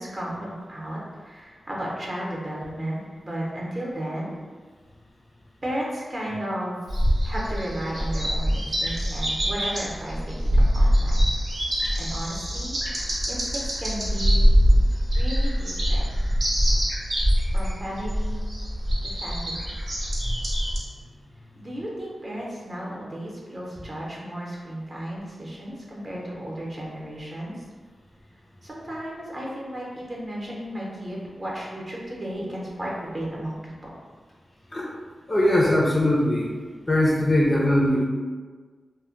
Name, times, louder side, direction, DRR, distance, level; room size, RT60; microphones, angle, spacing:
voice 1, 0.0-4.4 5.6-6.9 7.2-11.2 11.5-11.7 12.0-12.8 13.3-14.5 15.2-16.1 17.5-18.5 19.0-19.6 21.6-27.6 28.6-33.9, right 1 dB, 35° right, -4 dB, 0.7 m, -34 dB
sound 1, 6.9-20.8, equal, 65° right, 0.8 m, -23 dB
voice 2, 35.3-36.5 36.9-38.0, left 1 dB, 25° left, -3 dB, 0.4 m, -20 dB
2.1 x 2.1 x 3.7 m, 1.5 s
wide cardioid pair, 115°, 0 cm